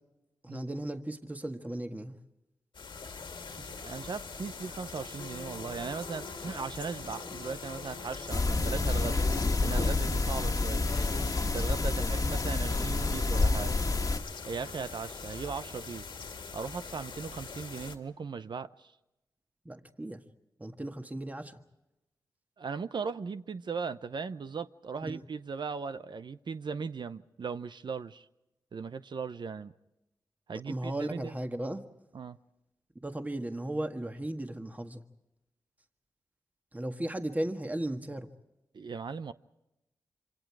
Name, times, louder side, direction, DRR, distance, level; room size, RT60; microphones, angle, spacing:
voice 1, 0.4-2.1 12.0-12.1 19.6-20.2 20.6-21.6 25.0-25.2 30.7-31.8 33.0-35.0 36.7-38.3, right 1 dB, 20° right, 1.6 m, -36 dB
sound 1, 2.7-18.0, left 4 dB, 80° left, 2.1 m, -42 dB
voice 2, 3.6-9.2 9.6-10.9 11.4-13.7 14.5-16.1 16.5-18.9 22.6-28.3 28.7-29.7 30.5-31.3 32.1-32.4 38.7-39.3, right 5 dB, 70° right, 0.7 m, -38 dB
sound 2, 8.3-14.2, left 3 dB, 45° left, 1.6 m, -28 dB
27.0 x 26.0 x 4.7 m
cardioid pair, 55°, 8 cm